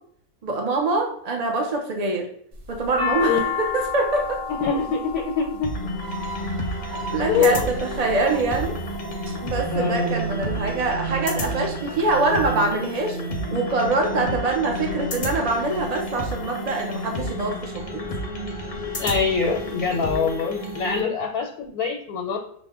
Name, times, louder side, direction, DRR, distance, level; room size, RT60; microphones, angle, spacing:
voice 1, 0.4-2.3 2.7-4.4 6.9-8.8 9.4-13.2 13.5-18.0, right 3 dB, 50° right, 1 dB, 0.5 m, -24 dB
sound 1, 2.5-6.8 7.6-8.1 8.7-9.3 9.7-9.8 9.9-10.8, left 8 dB, 75° right, 1.7 m, -30 dB
voice 2, 4.5-5.7 7.3-7.7 9.7-10.2 19.0-22.4, left 5 dB, 90° left, 1 dB, 1.2 m, -24 dB
sound 2, 5.6-21.0, equal, 45° left, 0.6 m, -30 dB
sound 3, 5.9-11.2, right 5 dB, 20° right, 0.8 m, -39 dB
6.0 x 2.1 x 3.5 m, 0.66 s
omnidirectional pair, 1.5 m